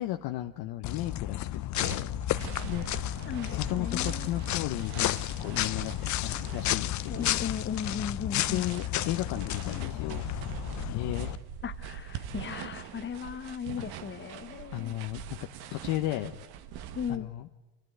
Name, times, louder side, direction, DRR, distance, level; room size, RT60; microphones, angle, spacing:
voice 1, 0.0-2.2 2.7-2.9 3.6-7.4 8.3-10.3 10.9-11.3 14.7-15.4 15.7-16.3 17.1-17.5, left 15 dB, 75° left, 1.2 m, -34 dB
sound 1, 0.8-11.4, left 14 dB, 45° left, 0.6 m, -32 dB
sound 2, 1.7-17.2, right 8 dB, 70° right, 1.6 m, -43 dB
voice 2, 3.3-4.3 7.1-8.7 11.6-14.9 16.9-17.3, left 7 dB, 30° left, 1.0 m, -36 dB
27.5 x 14.5 x 9.3 m
cardioid pair, 120°, 39 cm